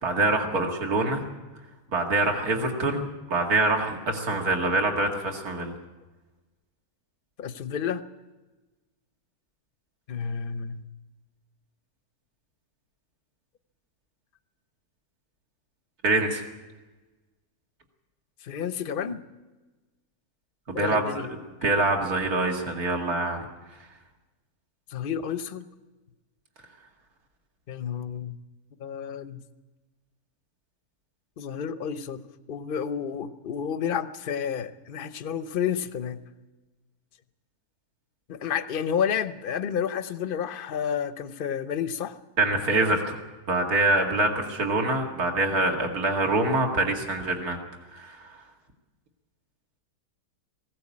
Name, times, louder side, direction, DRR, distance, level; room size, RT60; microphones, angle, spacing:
voice 1, 0.0-1.2 1.9-3.0 3.3-5.7 16.0-16.4 20.7-21.2 21.6-23.5 42.4-43.2 43.5-47.6 47.9-48.2, right 2 dB, 65° right, 2 dB, 2.7 m, -25 dB
voice 2, 7.4-8.0 10.1-10.8 18.4-19.2 20.7-21.3 24.9-25.7 27.7-28.4 28.8-29.4 31.4-36.2 38.3-42.2, left 8 dB, 45° left, 11 dB, 0.8 m, -30 dB
18.5 x 16.5 x 8.5 m, 1.2 s
omnidirectional pair, 1.7 m